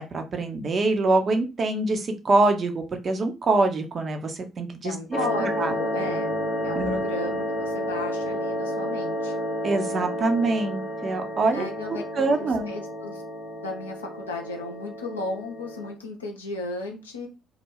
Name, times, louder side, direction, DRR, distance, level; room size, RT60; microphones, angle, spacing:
voice 1, 0.0-4.9 5.4-5.7 6.8-7.0 9.6-11.7 12.2-12.7, right 3 dB, 35° right, 5 dB, 0.5 m, -24 dB
voice 2, 4.8-6.3 6.6-9.4 11.5-12.0 12.4-13.2 13.6-17.3, left 2 dB, 80° left, 1 dB, 0.5 m, -34 dB
sound 1, 5.1-15.9, equal, 10° left, 0.7 m, -31 dB
2.3 x 2.1 x 3.1 m, 0.28 s
figure-of-eight pair, 50°, 0 cm